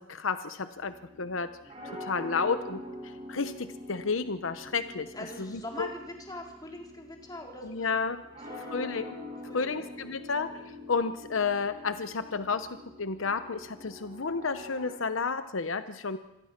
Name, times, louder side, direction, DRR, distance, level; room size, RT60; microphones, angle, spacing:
voice 1, 0.0-1.5 1.8-5.1 5.4-5.9 7.6-8.2 8.7-9.0 9.5-12.7 13.0-16.2, left 4 dB, 75° left, 11 dB, 0.9 m, -31 dB
sound 1, 0.8-14.9, left 1 dB, 35° right, 7.0 m, -45 dB
voice 2, 5.1-7.9 8.3-9.0 9.5-9.8, left 1 dB, 20° left, 1 dB, 3.7 m, -42 dB
26.0 x 18.5 x 5.9 m, 0.93 s
head